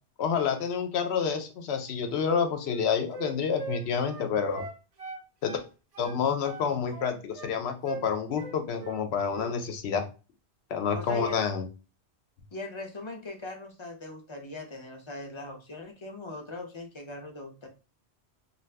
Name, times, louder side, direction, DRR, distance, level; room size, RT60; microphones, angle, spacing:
voice 1, 0.2-4.6 5.4-5.6 6.0-10.0 10.7-11.7, left 6 dB, 75° left, 6 dB, 0.9 m, -28 dB
Wind instrument woodwind instrument, 2.2-5.7 5.9-7.6 7.8-8.1 8.4-9.0 9.3-9.5, right 5 dB, 45° right, 0.6 m, -41 dB
voice 2, 10.9-11.4 12.5-17.7, left 3 dB, 35° left, 3 dB, 0.5 m, -40 dB
2.7 x 2.2 x 3.3 m, 0.32 s
omnidirectional pair, 1.1 m